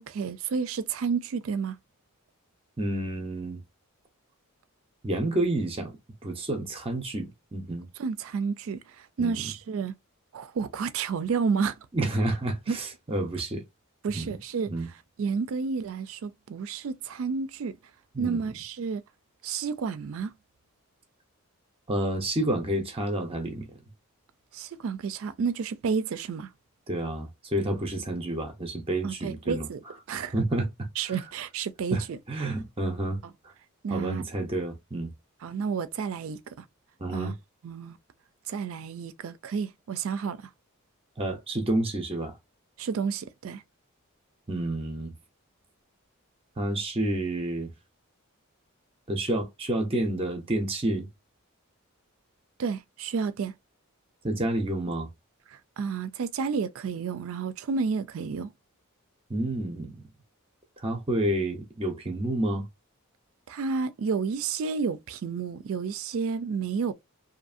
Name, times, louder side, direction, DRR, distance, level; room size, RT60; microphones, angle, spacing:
voice 1, 0.0-1.8 8.0-9.9 10.3-11.8 12.7-12.8 14.0-14.7 15.2-17.8 18.2-19.0 19.4-20.3 24.5-26.5 29.0-29.8 30.1-30.3 31.0-32.2 32.4-32.5 33.8-34.2 35.4-36.6 37.1-37.3 37.6-38.0 38.5-40.5 42.8-43.6 52.6-53.5 55.5-58.5 63.5-66.9, right 5 dB, 65° right, 0.3 m, -30 dB
voice 2, 2.8-3.6 5.0-5.9 6.2-7.9 9.2-9.4 11.9-13.6 14.1-14.3 14.7-14.9 18.1-18.4 21.9-23.7 26.9-29.7 30.3-30.9 31.9-33.2 33.9-35.1 37.0-37.4 41.2-42.3 44.5-45.1 46.6-47.7 49.1-51.1 54.2-55.1 59.3-60.0 60.8-62.7, right 1 dB, 25° right, 0.6 m, -29 dB
2.7 x 2.6 x 2.4 m
head